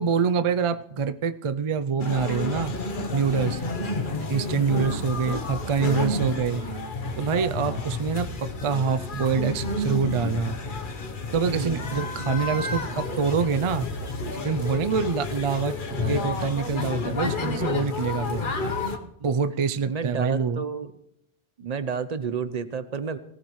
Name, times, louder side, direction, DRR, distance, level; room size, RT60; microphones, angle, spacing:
voice 1, 0.0-2.7 3.1-3.6 4.1-6.6 7.2-10.6 11.3-13.9 14.3-18.5 19.0-20.6, right 5 dB, 55° right, 12 dB, 0.3 m, -26 dB
sound 1, 2.0-19.0, left 3 dB, 45° left, 1.1 m, -30 dB
voice 2, 5.9-6.9 7.5-7.8 11.4-11.8 12.1-12.3 14.8-14.9 15.9-16.3 18.2-18.4 19.9-20.9 21.6-23.2, right 6 dB, 40° right, 11 dB, 0.8 m, -33 dB
18.5 x 15.0 x 3.2 m, 0.77 s
omnidirectional pair, 1.2 m